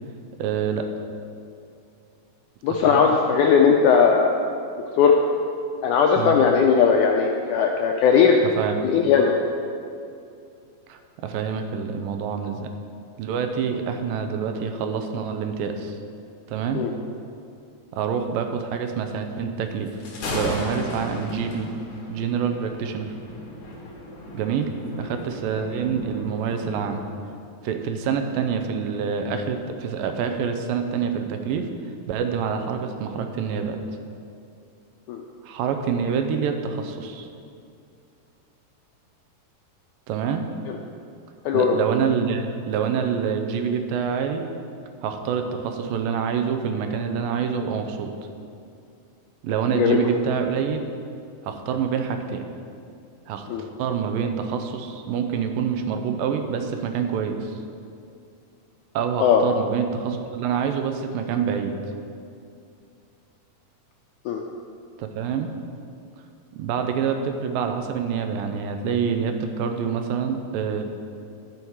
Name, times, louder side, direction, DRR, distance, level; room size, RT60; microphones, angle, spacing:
voice 1, 0.4-0.9 2.8-3.1 6.2-6.4 8.6-8.9 10.9-12.7 13.2-16.0 16.5-16.8 17.9-19.9 20.3-21.7 22.1-23.1 24.3-24.7 25.0-27.0 27.6-31.7 32.1-33.8 35.4-37.3 40.1-40.4 41.5-44.4 45.0-48.1 49.4-50.8 51.4-52.4 53.3-57.6 58.9-61.7 65.0-65.5 66.5-70.9, right 7 dB, 85° right, 6 dB, 2.4 m, -26 dB
voice 2, 2.6-4.4 5.0-5.2 5.8-8.4 8.8-9.3 16.7-16.9 35.1-35.2 40.7-40.8 41.5-41.8 49.8-50.1 53.5-53.6 59.2-59.4 64.3-64.4, left 6 dB, 85° left, 2 dB, 1.8 m, -18 dB
Thunder, 19.9-27.1, left 1 dB, 65° left, 2.9 m, -35 dB
11.5 x 7.2 x 4.6 m, 2.5 s
omnidirectional pair, 4.0 m